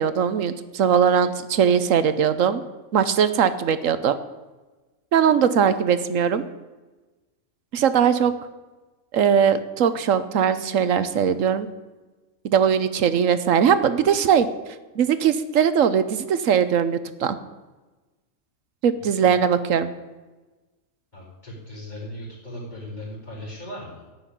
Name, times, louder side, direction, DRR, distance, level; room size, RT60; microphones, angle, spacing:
voice 1, 0.0-2.6 2.9-4.1 5.1-6.4 7.7-8.3 9.1-11.7 12.4-14.5 15.0-17.4 18.8-19.9, right 7 dB, 70° right, 13 dB, 1.2 m, -20 dB
voice 2, 21.1-24.0, left 1 dB, 30° left, -11 dB, 5.0 m, -38 dB
15.0 x 6.3 x 9.9 m, 1.2 s
omnidirectional pair, 1.5 m